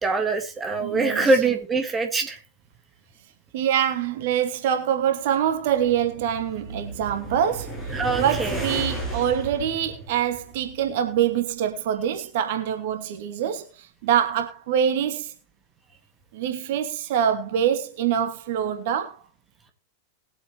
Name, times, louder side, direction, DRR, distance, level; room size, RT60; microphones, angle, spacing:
voice 1, 0.0-2.4 7.9-8.6, right 3 dB, 15° right, 1.8 m, -23 dB
voice 2, 0.8-1.3 3.5-7.8 8.1-15.3 16.3-19.2, right 9 dB, 50° right, 1.3 m, -25 dB
sound 1, 5.5-11.0, right 1 dB, 10° left, 6.9 m, -34 dB
20.5 x 8.1 x 3.1 m
figure-of-eight pair, 90°, 0 cm